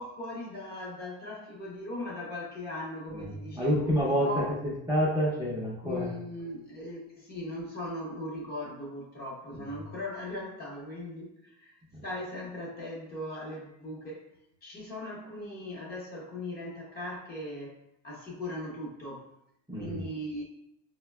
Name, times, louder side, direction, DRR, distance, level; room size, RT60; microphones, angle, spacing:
voice 1, 0.0-4.5 5.8-14.2 14.6-17.8 18.0-19.3 19.7-20.4, left 1 dB, 25° left, -3 dB, 0.8 m, -39 dB
voice 2, 3.1-4.3 4.6-6.1 11.9-12.0 19.7-20.0, equal, 10° right, -8 dB, 0.6 m, -28 dB
4.9 x 2.1 x 2.2 m, 0.78 s
cardioid pair, 150°, 34 cm